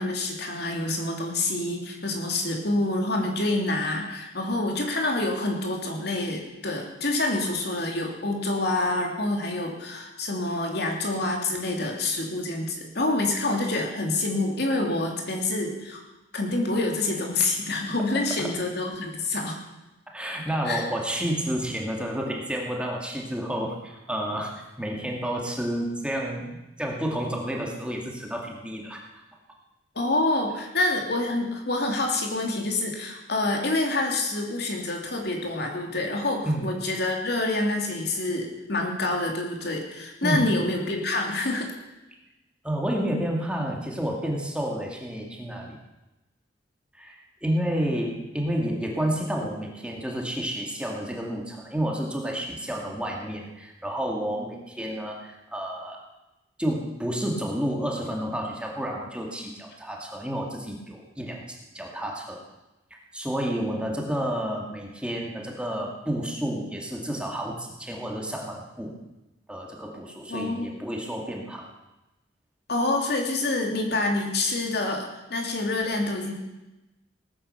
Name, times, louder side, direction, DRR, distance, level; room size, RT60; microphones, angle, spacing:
voice 1, 0.0-16.0 16.3-19.6 20.6-20.8 29.9-41.7 70.3-70.7 72.7-76.3, left 2 dB, 60° left, 1 dB, 2.9 m, -27 dB
voice 2, 20.1-29.0 36.4-36.6 40.2-40.5 42.6-45.8 46.9-56.0 56.6-62.4 63.1-68.9 69.5-71.7, right 1 dB, 5° right, -1 dB, 2.3 m, -30 dB
18.5 x 10.0 x 6.9 m, 1.0 s
head